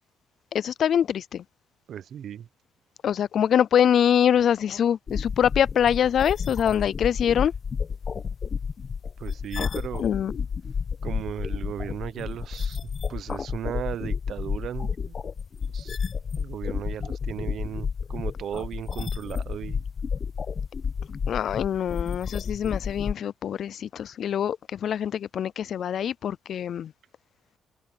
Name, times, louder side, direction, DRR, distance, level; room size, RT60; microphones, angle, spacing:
voice 1, 0.5-1.4 3.0-7.5 10.0-10.3 21.3-26.9, left 9 dB, 65° left, 0.4 m, -24 dB
voice 2, 1.9-2.5 9.2-10.0 11.0-15.1 15.7-16.0 16.4-19.8, right 9 dB, 65° right, 0.9 m, -36 dB
sound 1, 5.1-23.1, left 6 dB, 45° left, 1.1 m, -31 dB
cardioid pair, 90°, 0 cm